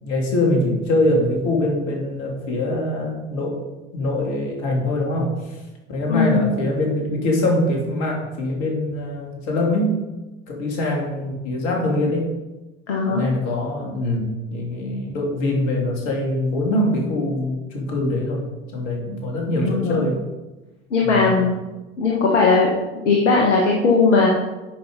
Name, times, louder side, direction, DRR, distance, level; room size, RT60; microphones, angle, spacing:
voice 1, 0.0-3.6 3.9-5.3 5.9-10.0 10.5-12.3 13.1-18.4 18.7-20.2 21.0-21.4, left 1 dB, 60° left, 0 dB, 3.1 m, -23 dB
voice 2, 6.1-6.5 12.9-13.2 19.6-20.0 20.9-21.5 22.0-22.7 23.0-24.3, left 4 dB, 75° left, -1 dB, 1.5 m, -18 dB
9.4 x 5.6 x 5.3 m, 1.1 s
figure-of-eight pair, 75°, 36 cm